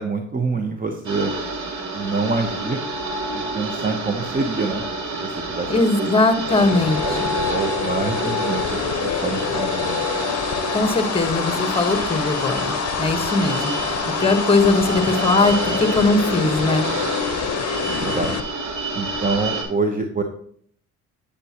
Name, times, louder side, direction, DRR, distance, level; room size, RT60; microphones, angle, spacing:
voice 1, 0.0-1.3 1.9-2.8 3.3-4.8 5.1-6.1 7.0-10.1 16.6-16.7 17.9-18.4 18.9-20.2, right 3 dB, 30° right, 5 dB, 0.8 m, -26 dB
sound 1, 1.0-19.6, right 2 dB, 65° right, 2.4 m, -28 dB
voice 2, 5.7-7.2 10.7-13.8 14.2-16.9, left 2 dB, 20° left, 7 dB, 1.2 m, -20 dB
sound 2, 6.4-18.4, left 8 dB, 55° left, 0.6 m, -27 dB
8.3 x 7.7 x 2.9 m, 0.62 s
cardioid pair, 90°, 30 cm